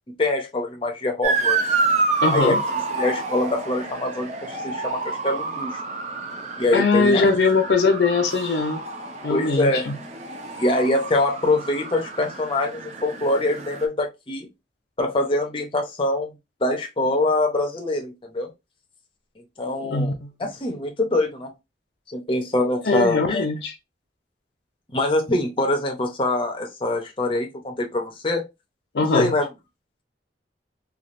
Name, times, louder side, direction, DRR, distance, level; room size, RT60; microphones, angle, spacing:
voice 1, 0.2-1.6 2.3-2.6 3.0-5.8 6.6-7.3 9.3-9.9 10.6-14.5 15.0-16.3 16.6-18.5 19.6-21.5 22.1-23.5 24.9-28.4 29.1-29.5, left 2 dB, 30° left, 0.6 m, -24 dB
Motor vehicle (road) / Siren, 1.2-13.8, right 4 dB, 40° right, 0.5 m, -28 dB
voice 2, 2.2-2.6 6.7-8.8 9.2-10.0 19.8-20.3 22.8-23.7 28.9-29.3, left 3 dB, 70° left, 0.5 m, -21 dB
3.2 x 2.4 x 2.5 m
head